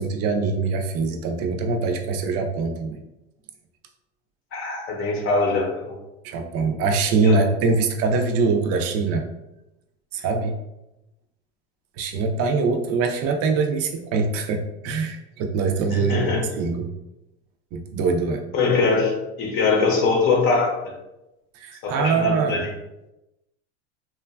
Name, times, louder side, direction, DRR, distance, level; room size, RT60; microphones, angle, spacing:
voice 1, 0.0-3.0 6.2-9.2 10.1-10.6 12.0-16.3 16.6-16.9 17.7-18.4 21.6-22.6, right 4 dB, 50° right, 4 dB, 0.4 m, -23 dB
voice 2, 4.5-6.0 7.2-7.4 15.9-16.4 18.5-20.9 21.8-22.7, left 4 dB, 40° left, 1 dB, 0.7 m, -22 dB
3.0 x 2.2 x 2.3 m, 0.93 s
supercardioid pair, 130°, 32 cm